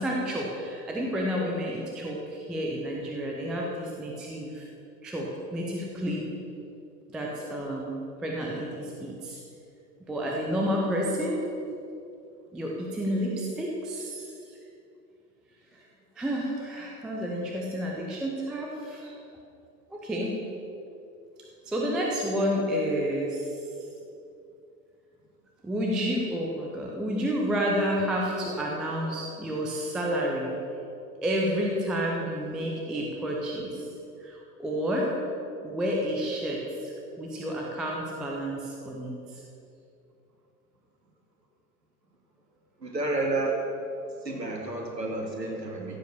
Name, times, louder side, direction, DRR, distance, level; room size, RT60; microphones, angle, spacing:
voice 1, 0.0-4.7 5.0-6.2 7.1-9.4 10.1-11.4 12.5-14.3 15.7-15.8 16.2-19.1 19.9-20.3 21.7-23.4 25.6-30.6 31.2-33.9 34.2-35.1 35.6-39.4, equal, ahead, -2 dB, 0.3 m, -30 dB
voice 2, 42.8-43.6 44.2-46.0, right 2 dB, 85° right, 1 dB, 2.3 m, -30 dB
15.0 x 7.4 x 6.6 m, 2.6 s
figure-of-eight pair, 95°, 48 cm